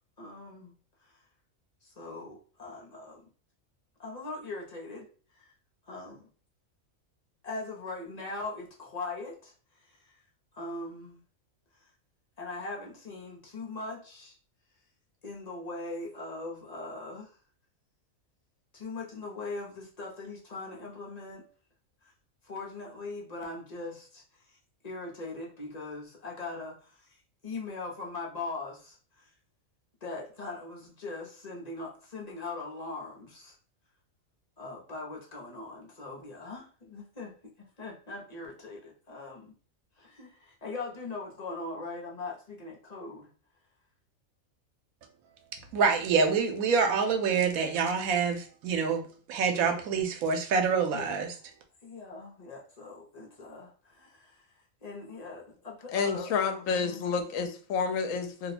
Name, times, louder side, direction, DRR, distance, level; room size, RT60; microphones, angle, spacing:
voice 1, 0.2-0.7 1.0-1.2 1.8-3.2 4.0-5.1 5.3-5.5 5.9-6.3 7.4-9.5 9.8-10.2 10.5-11.2 12.4-14.4 15.2-17.3 18.7-21.4 22.0-22.1 22.4-24.6 24.8-29.3 30.0-33.5 34.6-39.5 40.0-43.3 48.7-48.8 50.9-51.1 51.8-57.1, left 3 dB, 35° left, -2 dB, 0.8 m, -41 dB
voice 2, 45.7-49.0 49.3-51.3, right 5 dB, 85° right, 5 dB, 1.1 m, -26 dB
voice 3, 55.9-58.5, left 5 dB, 75° left, 7 dB, 1.0 m, -29 dB
2.7 x 2.2 x 4.1 m, 0.40 s
omnidirectional pair, 1.4 m